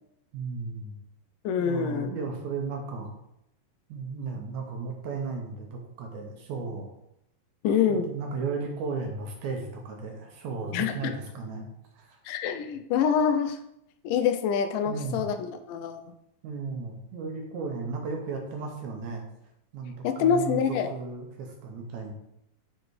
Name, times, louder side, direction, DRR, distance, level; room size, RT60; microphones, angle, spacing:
voice 1, 0.3-0.9 1.6-3.1 3.9-6.9 7.9-11.7 11.9-12.2 14.9-15.2 16.4-19.3 19.7-22.1, right 4 dB, 70° right, 2 dB, 2.0 m, -35 dB
voice 2, 1.5-2.1 7.6-8.1 10.7-11.1 12.3-13.6 14.0-16.0 20.0-20.9, left 7 dB, 85° left, 8 dB, 2.1 m, -26 dB
6.8 x 3.9 x 4.6 m, 0.81 s
omnidirectional pair, 3.8 m